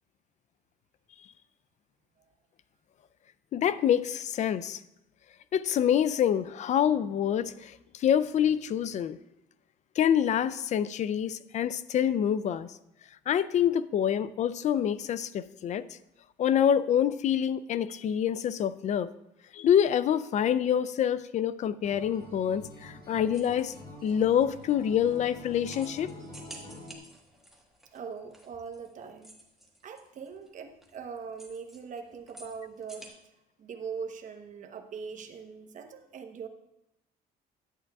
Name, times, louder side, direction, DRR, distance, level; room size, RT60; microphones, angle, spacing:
voice 1, 3.5-4.8 5.5-9.2 10.0-12.7 13.3-15.9 16.4-19.1 19.5-23.7 24.0-26.1, left 9 dB, 45° left, 16 dB, 0.4 m, -26 dB
Acoustic guitar, 21.8-27.0, left 1 dB, 25° left, 2.4 m, -47 dB
sound 1, 23.3-33.1, right 1 dB, ahead, 1.3 m, -53 dB
voice 2, 27.9-29.4 29.8-33.2 33.6-36.5, right 6 dB, 50° right, 5 dB, 0.9 m, -41 dB
11.0 x 8.6 x 2.3 m, 0.87 s
cardioid pair, 110°, 17 cm